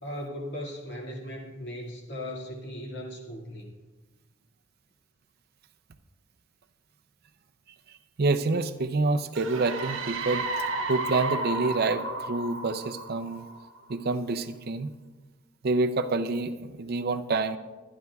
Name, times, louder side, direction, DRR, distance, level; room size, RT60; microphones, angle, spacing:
voice 1, 0.0-3.7, equal, 55° left, 0 dB, 2.1 m, -38 dB
voice 2, 8.2-10.5 10.9-13.4 13.9-14.9 15.6-17.6, right 3 dB, 50° right, 9 dB, 0.5 m, -27 dB
sound 1, 9.4-13.9, right 2 dB, 70° right, 1.0 m, -33 dB
23.0 x 10.5 x 2.3 m, 1.3 s
head